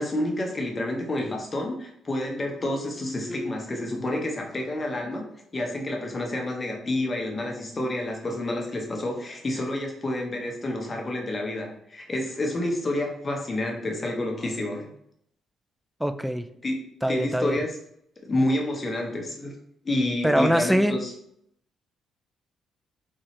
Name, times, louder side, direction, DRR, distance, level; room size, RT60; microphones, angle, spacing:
voice 1, 0.0-5.3 5.5-14.9 16.6-16.8 17.1-17.7 18.2-19.5 19.8-21.1, left 1 dB, 30° left, 1 dB, 0.9 m, -29 dB
voice 2, 16.0-16.5 17.0-17.6 20.2-21.0, equal, 5° right, 10 dB, 0.3 m, -23 dB
3.7 x 2.7 x 3.1 m, 0.72 s
cardioid pair, 90°, 0 cm